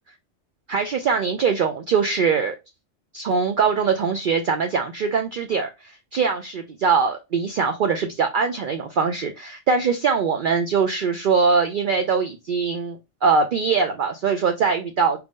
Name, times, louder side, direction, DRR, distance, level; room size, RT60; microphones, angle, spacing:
voice 1, 0.7-2.6 3.1-15.2, right 5 dB, 60° right, 0.6 m, -22 dB
4.5 x 2.6 x 3.5 m
omnidirectional pair, 1.2 m